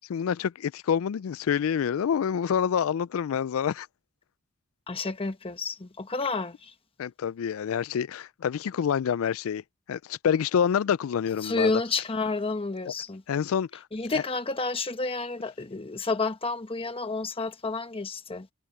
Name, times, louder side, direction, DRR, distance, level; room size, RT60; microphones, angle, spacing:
voice 1, 0.1-3.9 7.0-9.6 9.9-11.7 12.9-13.0 13.3-13.8 14.1-14.2, left 8 dB, 80° left, 0.4 m, -27 dB
voice 2, 4.9-6.7 11.4-13.2 13.9-18.5, left 3 dB, 25° left, 1.2 m, -30 dB
head